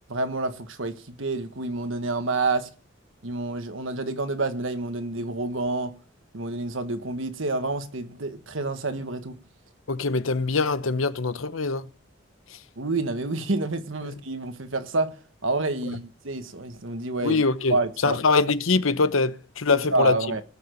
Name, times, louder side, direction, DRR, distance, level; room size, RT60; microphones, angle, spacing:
voice 1, 0.1-2.7 3.2-5.9 6.3-9.4 12.8-15.2 15.4-17.4 17.7-18.2 19.7-20.4, right 2 dB, 75° right, 1.4 m, -28 dB
voice 2, 9.9-11.9 12.5-12.6 17.2-17.8 18.0-20.2, left 3 dB, 80° left, 0.9 m, -23 dB
18.5 x 7.0 x 6.5 m
head